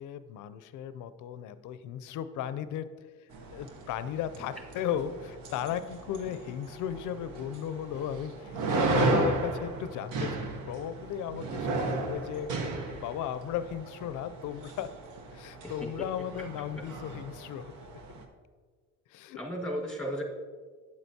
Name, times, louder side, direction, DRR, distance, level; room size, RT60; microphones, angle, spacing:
voice 1, 0.0-2.9 3.2-12.6 12.9-14.9 15.3-17.7 18.1-18.2 19.1-19.4, left 9 dB, 85° left, 13 dB, 0.5 m, -36 dB
sound 1, 3.3-18.3, right 2 dB, 90° right, 0.9 m, -34 dB
voice 2, 15.6-16.1 16.8-16.9 19.4-20.2, equal, ahead, 1 dB, 1.5 m, -35 dB
8.6 x 7.7 x 2.8 m, 1.5 s
cardioid pair, 90°, 30 cm